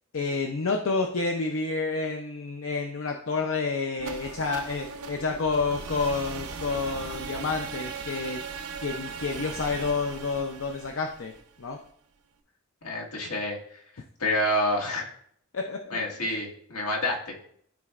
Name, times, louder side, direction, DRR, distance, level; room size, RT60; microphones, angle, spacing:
voice 1, 0.1-8.4 8.8-11.3 11.6-11.8 15.5-16.3, left 4 dB, 65° left, 3 dB, 0.6 m, -29 dB
sound 1, 4.0-11.9, right 5 dB, 80° right, 0.7 m, -38 dB
voice 2, 12.8-13.8 14.2-15.1 15.9-17.4, left 1 dB, 85° left, -1 dB, 1.7 m, -28 dB
12.5 x 4.3 x 2.4 m, 0.65 s
head